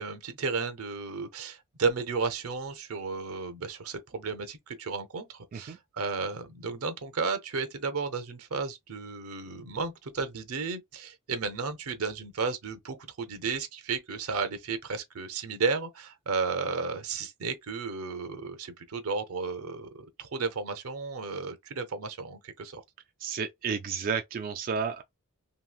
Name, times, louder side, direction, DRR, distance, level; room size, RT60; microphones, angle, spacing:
voice 1, 0.0-22.8, right 4 dB, 80° right, 0.7 m, -33 dB
voice 2, 23.2-25.0, right 6 dB, 40° right, 0.3 m, -32 dB
3.0 x 2.7 x 2.3 m
head